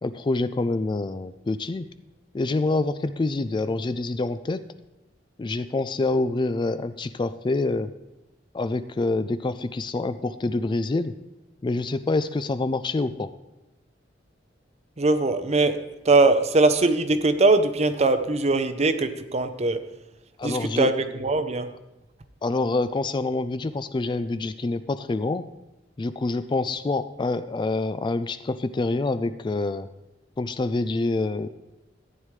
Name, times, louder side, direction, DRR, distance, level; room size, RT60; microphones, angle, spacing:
voice 1, 0.0-1.9 2.3-4.6 5.4-7.9 8.5-11.1 11.6-13.3 20.4-20.9 22.4-25.4 26.0-29.9 30.4-31.5, left 2 dB, 25° left, 11 dB, 0.3 m, -26 dB
voice 2, 15.0-15.8 16.1-19.8 20.4-20.9 21.2-21.7, right 3 dB, 35° right, 10 dB, 0.7 m, -21 dB
14.0 x 9.1 x 3.2 m, 0.99 s
head